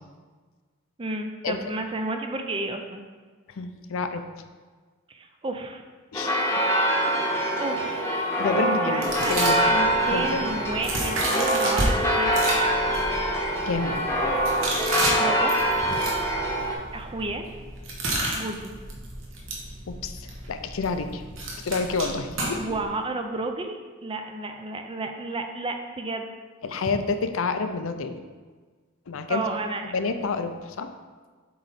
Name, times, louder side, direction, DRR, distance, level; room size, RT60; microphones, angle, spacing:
voice 1, 1.0-3.0 5.1-5.8 7.6-8.3 8.7-9.4 9.6-12.3 15.2-15.6 15.9-16.0 16.9-17.5 18.3-18.7 22.5-26.3 26.9-27.0 29.3-29.9, right 2 dB, 25° right, 5 dB, 0.4 m, -32 dB
voice 2, 3.5-4.2 6.1-6.6 8.4-9.6 10.1-10.5 13.6-14.1 19.9-21.2 21.6-22.7 26.6-28.2 29.1-29.4 29.9-30.9, left 4 dB, 75° left, 9 dB, 0.5 m, -29 dB
sound 1, 6.1-16.7, right 1 dB, 15° left, 0.9 m, -24 dB
sound 2, 9.0-11.9 12.3-22.8, right 1 dB, 65° right, 1.2 m, -32 dB
7.6 x 4.0 x 4.1 m, 1.4 s
head